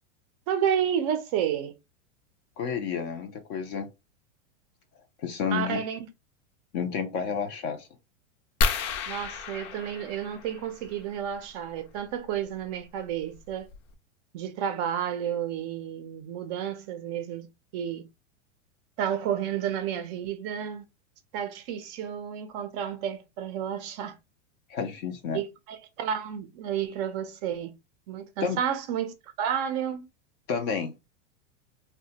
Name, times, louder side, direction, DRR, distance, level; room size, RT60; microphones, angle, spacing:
voice 1, 0.5-1.7 5.5-6.1 9.1-13.7 14.3-17.5 17.7-18.0 19.0-20.8 21.3-24.2 25.3-27.7 28.1-30.1, right 9 dB, 35° right, 0.4 m, -31 dB
voice 2, 2.6-3.9 5.2-5.8 6.7-7.9 24.7-25.4 28.4-28.6 30.5-30.9, left 6 dB, 35° left, 0.4 m, -30 dB
sound 1, 8.6-11.0 12.6-12.8 13.3-13.4 13.7-13.9, left 4 dB, 75° left, 0.7 m, -30 dB
3.0 x 2.1 x 2.7 m
supercardioid pair, 145°, 38 cm